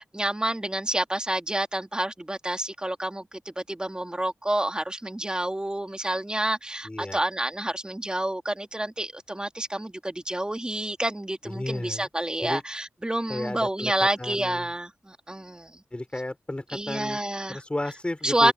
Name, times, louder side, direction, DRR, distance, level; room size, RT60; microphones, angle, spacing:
voice 1, 0.0-15.8 16.7-17.6 18.2-18.5, right 1 dB, 20° right, 2.8 m, -29 dB
voice 2, 6.8-7.2 11.4-12.1 12.4-12.6 13.3-13.9 14.2-14.7 15.9-17.2 17.5-18.5, left 1 dB, 25° left, 4.7 m, -33 dB
cardioid pair, 50°, 5 cm